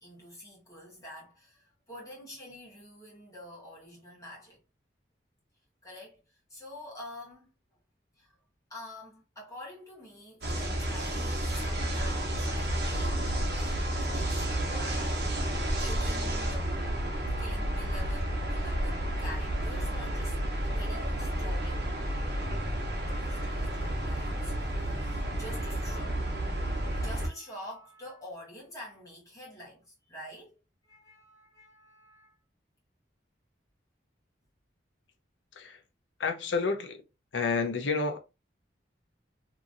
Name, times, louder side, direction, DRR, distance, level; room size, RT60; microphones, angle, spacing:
voice 1, 0.0-4.6 5.8-7.5 8.2-8.4 8.7-16.7 17.1-21.8 23.1-32.4, equal, 20° left, 1.4 m, -48 dB
sound 1, 10.4-27.3, right 1 dB, 60° right, 0.9 m, -31 dB
voice 2, 36.2-37.0 37.3-38.2, left 4 dB, 85° left, 0.6 m, -29 dB
3.0 x 2.6 x 2.5 m
head